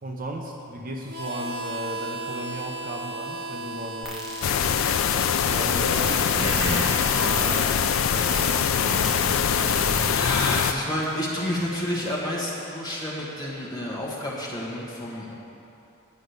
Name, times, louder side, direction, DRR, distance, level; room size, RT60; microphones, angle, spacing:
voice 1, 0.0-4.3 5.5-6.8 7.1-7.8, equal, 40° right, 2 dB, 0.7 m, -35 dB
Harmonica, 1.1-13.7, right 1 dB, 75° right, 1.8 m, -38 dB
sound 1, 4.0-10.2 10.4-10.5 11.0-11.1, equal, 5° right, 0.9 m, -31 dB
sound 2, 4.4-10.7, left 8 dB, 70° left, 0.4 m, -23 dB
voice 2, 6.4-7.0 10.1-15.3, left 1 dB, 20° left, -5 dB, 1.6 m, -30 dB
9.8 x 5.1 x 8.0 m, 2.9 s
head